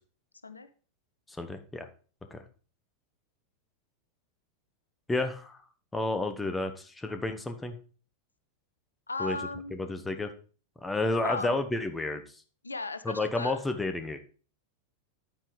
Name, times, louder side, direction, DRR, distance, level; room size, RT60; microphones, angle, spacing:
voice 1, 1.4-1.9 2.3-2.4 5.1-5.6 5.9-7.8 9.2-9.4 9.8-10.3 10.8-12.2 13.0-14.2, left 2 dB, 10° left, 8 dB, 1.0 m, -31 dB
voice 2, 9.1-9.7 11.1-11.6 12.6-13.6, left 3 dB, 80° left, 11 dB, 0.6 m, -36 dB
10.0 x 9.0 x 3.2 m, 0.39 s
figure-of-eight pair, 90°, 0 cm